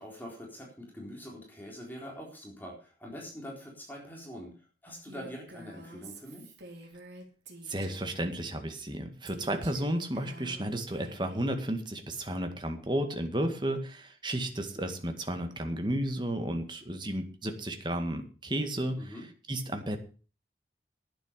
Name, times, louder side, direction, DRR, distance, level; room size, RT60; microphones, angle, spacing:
voice 1, 0.0-6.5 19.0-19.2, equal, 10° left, -2 dB, 4.1 m, -44 dB
Female speech woman speaking, 5.1-8.4 9.2-11.5, right 1 dB, 75° right, 3.0 m, -49 dB
voice 2, 7.7-19.0 19.5-20.0, right 1 dB, 25° right, 6 dB, 1.9 m, -33 dB
11.5 x 9.2 x 6.7 m, 0.38 s
head